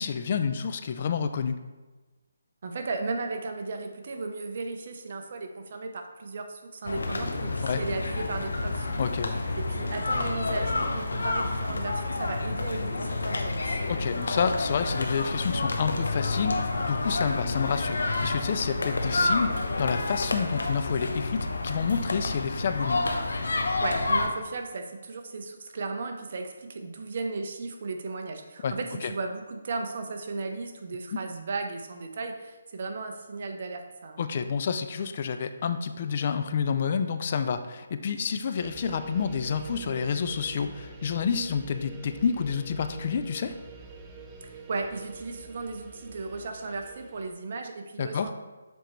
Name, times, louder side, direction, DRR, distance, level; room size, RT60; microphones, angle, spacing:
voice 1, 0.0-1.6 7.6-7.8 9.0-9.4 13.9-21.4 21.6-23.0 28.6-28.8 29.0-29.1 34.2-43.6 48.0-48.3, left 6 dB, 40° left, 9 dB, 0.3 m, -29 dB
voice 2, 2.6-9.0 9.6-13.9 23.8-34.2 44.4-48.3, right 3 dB, 50° right, 5 dB, 0.7 m, -35 dB
sound 1, 6.9-24.3, left 2 dB, 80° left, 0.8 m, -29 dB
sound 2, 38.6-47.3, right 3 dB, 15° right, 0.6 m, -46 dB
7.0 x 4.4 x 3.1 m, 1.2 s
hypercardioid pair, 160°, 0 cm